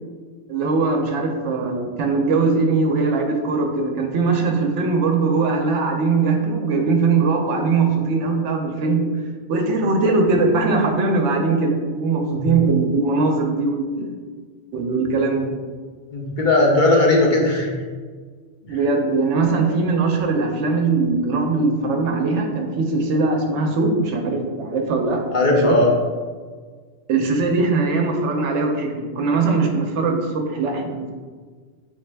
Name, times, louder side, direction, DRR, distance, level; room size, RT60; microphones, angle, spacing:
voice 1, 0.5-9.1 9.5-13.9 14.7-15.5 18.7-25.8 27.1-31.1, right 3 dB, 80° right, 3 dB, 1.0 m, -20 dB
voice 2, 16.1-17.7 18.7-18.8 25.3-25.9, left 2 dB, 50° left, -2 dB, 0.8 m, -18 dB
4.0 x 3.4 x 3.3 m, 1.5 s
omnidirectional pair, 1.2 m